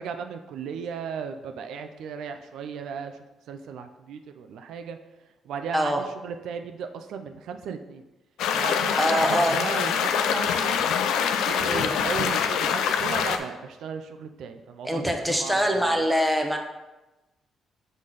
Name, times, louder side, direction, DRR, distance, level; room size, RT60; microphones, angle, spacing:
voice 1, 0.0-3.2 3.5-5.0 5.4-8.0 8.5-10.9 11.4-16.0, right 6 dB, 80° right, 7 dB, 0.4 m, -36 dB
sound 1, 8.4-13.4, left 7 dB, 85° left, 0.4 m, -24 dB
voice 2, 9.0-9.6 11.6-11.9 14.8-16.6, equal, 5° right, 2 dB, 0.9 m, -24 dB
5.6 x 4.0 x 4.9 m, 1.0 s
cardioid pair, 90°, 0 cm